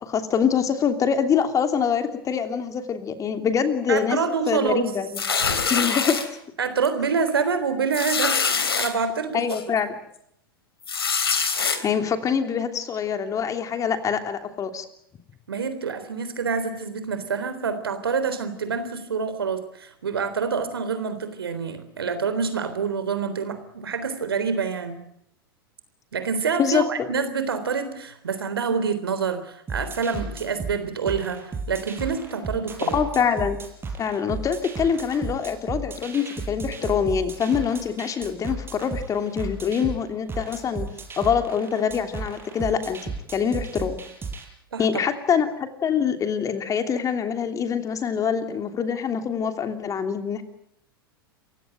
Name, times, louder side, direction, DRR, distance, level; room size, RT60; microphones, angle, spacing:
voice 1, 0.0-4.2 4.5-5.2 5.7-6.2 9.3-9.9 11.8-14.8 26.6-27.1 32.9-33.6 34.0-40.9 41.2-44.0 44.8-50.4, left 7 dB, 25° left, 8 dB, 3.0 m, -25 dB
voice 2, 3.9-4.9 6.6-8.5 8.8-9.4 15.5-25.0 26.1-33.0 44.7-44.9, right 5 dB, 80° right, 11 dB, 3.7 m, -27 dB
sound 1, 5.1-6.2 6.9-7.0 7.3-7.4 7.9-8.9 9.5-9.6 10.8-11.8, left 5 dB, 80° left, 3.4 m, -24 dB
sound 2, 29.7-44.4, right 3 dB, 20° right, 5.2 m, -34 dB
28.0 x 16.0 x 9.1 m, 0.74 s
hypercardioid pair, 95°, 12 cm